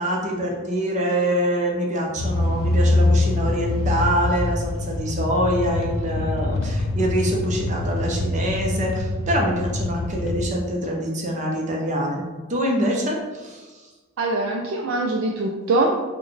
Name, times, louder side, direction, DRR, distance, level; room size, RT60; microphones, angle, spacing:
voice 1, 0.0-12.2 12.5-13.8, right 1 dB, 35° right, -1 dB, 0.6 m, -25 dB
sound 1, 2.2-10.4, left 2 dB, 75° left, 0.4 m, -24 dB
voice 2, 14.2-16.2, right 2 dB, 70° right, 0 dB, 0.4 m, -23 dB
4.5 x 2.2 x 3.2 m, 1.3 s
head